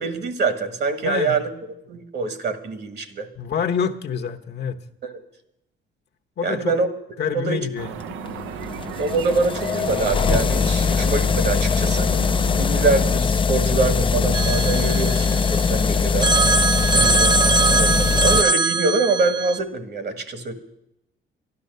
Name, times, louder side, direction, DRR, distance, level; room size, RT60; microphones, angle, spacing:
voice 1, 0.0-1.5 1.9-3.3 6.4-6.9 7.3-7.6 9.0-12.1 12.6-16.3 16.9-20.5, right 3 dB, 55° right, 9 dB, 1.7 m, -24 dB
voice 2, 1.0-1.4 3.4-4.8 6.4-6.7 7.2-8.0, left 7 dB, 60° left, 4 dB, 1.0 m, -27 dB
sound 1, 7.8-13.2, right 9 dB, 85° right, 0.6 m, -35 dB
sound 2, 8.1-18.4, left 5 dB, 25° left, 0.4 m, -21 dB
Telephone, 14.3-15.7 16.2-19.6, right 3 dB, 25° right, 0.6 m, -21 dB
11.5 x 11.5 x 6.7 m, 0.84 s
cardioid pair, 90°, 20 cm